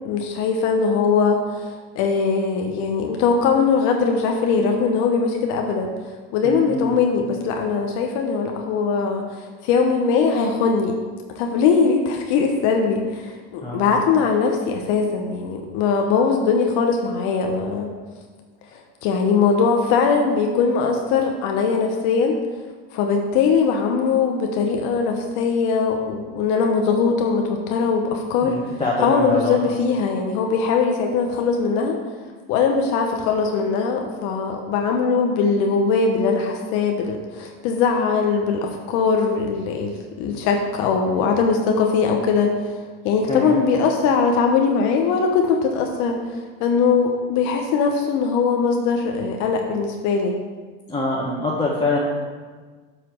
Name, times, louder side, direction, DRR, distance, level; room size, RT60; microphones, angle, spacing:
voice 1, 0.0-5.9 6.3-10.9 11.3-17.9 18.7-22.4 22.9-28.6 29.0-32.0 32.5-42.8 43.0-50.3, left 5 dB, 65° left, 3 dB, 0.9 m, -21 dB
voice 2, 6.4-6.9 13.6-13.9 28.4-29.6 43.3-43.6 50.9-52.0, left 2 dB, 15° left, -5 dB, 1.3 m, -24 dB
7.9 x 3.2 x 6.2 m, 1.4 s
hypercardioid pair, 90°, 30 cm